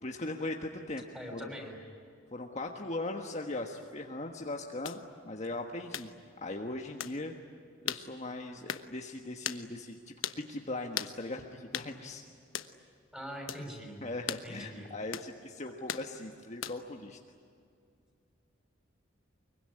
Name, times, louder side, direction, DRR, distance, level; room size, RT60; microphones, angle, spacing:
voice 1, 0.0-1.0 1.3-1.5 2.3-6.1 6.4-7.3 7.8-12.2 14.0-17.2, left 2 dB, 35° left, 2 dB, 1.5 m, -39 dB
voice 2, 1.1-1.8 13.1-14.0 14.4-14.9, equal, 5° right, 2 dB, 6.0 m, -42 dB
sound 1, 4.8-5.0 5.9-6.1 7.0-7.2 7.9-8.1 8.7-8.9 9.4-9.6 10.2-10.4 11.0-11.2 11.7-11.9 12.5-12.7 13.5-13.7 14.3-14.5 15.1-15.3 15.9-16.1 16.6-16.9, left 9 dB, 85° left, 1.2 m, -37 dB
24.5 x 23.0 x 9.9 m, 2.3 s
head